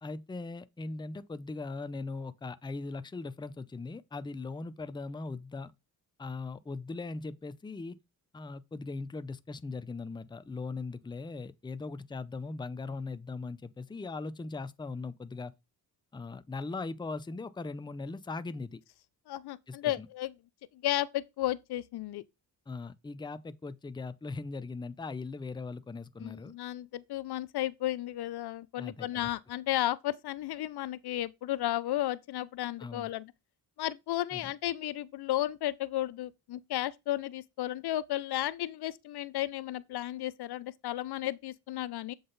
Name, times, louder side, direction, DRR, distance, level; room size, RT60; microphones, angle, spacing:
voice 1, 0.0-5.7 6.2-8.0 8.3-15.5 16.1-18.8 19.7-20.1 22.7-26.5 28.8-29.3 32.8-33.1 34.3-34.5, left 3 dB, 10° left, 0.5 m, -39 dB
voice 2, 19.3-20.3 20.7-22.2 26.2-33.3 33.8-42.1, left 14 dB, 65° left, 0.5 m, -33 dB
7.6 x 3.9 x 3.9 m
supercardioid pair, 55°, 42 cm